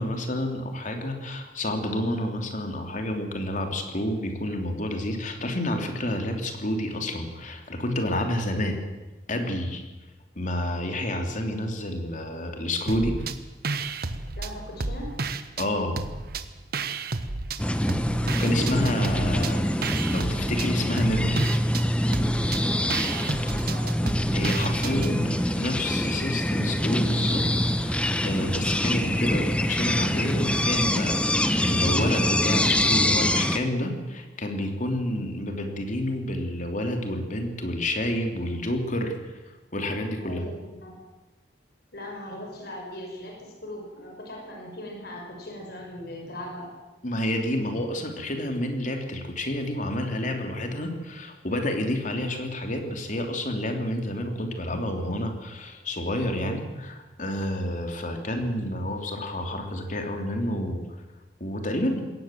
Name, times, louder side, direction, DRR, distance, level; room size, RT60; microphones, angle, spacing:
voice 1, 0.0-8.7 9.3-9.8 10.4-13.2 15.6-16.0 18.4-21.4 24.3-27.5 27.8-39.4 39.7-40.4 47.0-60.8 61.4-62.1, left 1 dB, 45° left, 4 dB, 3.3 m, -29 dB
sound 1, 12.9-13.4 13.6-15.7 16.0-17.6 17.9-25.1, right 3 dB, 60° right, 1.3 m, -32 dB
voice 2, 14.4-15.1 23.0-24.0 40.2-41.0 41.9-46.7, left 1 dB, 65° left, 1 dB, 5.6 m, -39 dB
sound 2, 17.6-33.6, left 1 dB, 5° left, 1.1 m, -25 dB
21.0 x 18.0 x 7.6 m, 1.1 s
head